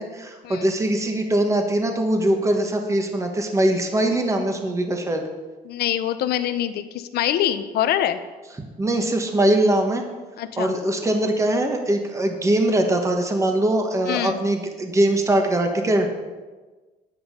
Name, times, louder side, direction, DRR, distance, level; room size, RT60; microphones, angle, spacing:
voice 1, 0.0-5.3 8.8-10.0 10.6-16.1, right 1 dB, 15° right, 4 dB, 1.3 m, -22 dB
voice 2, 5.6-8.2 10.4-10.7 14.0-14.4, left 11 dB, 70° left, 10 dB, 0.8 m, -24 dB
10.0 x 8.9 x 5.2 m, 1.3 s
cardioid pair, 110°, 17 cm